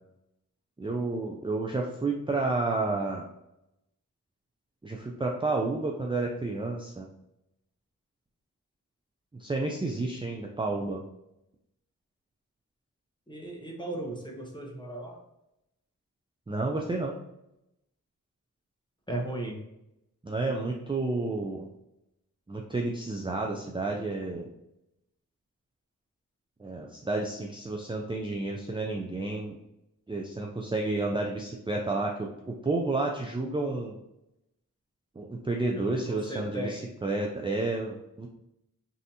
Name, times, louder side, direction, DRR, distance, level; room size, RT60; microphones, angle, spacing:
voice 1, 0.8-3.2 4.8-7.1 9.4-11.0 16.5-17.2 20.2-21.7 22.5-24.5 26.6-29.6 30.1-34.0 35.2-38.3, right 2 dB, 15° right, 0 dB, 0.4 m, -31 dB
voice 2, 13.3-15.2 19.1-19.6 35.7-36.8, right 1 dB, 15° left, 0 dB, 0.8 m, -36 dB
3.2 x 2.7 x 2.7 m, 0.86 s
cardioid pair, 45°, 34 cm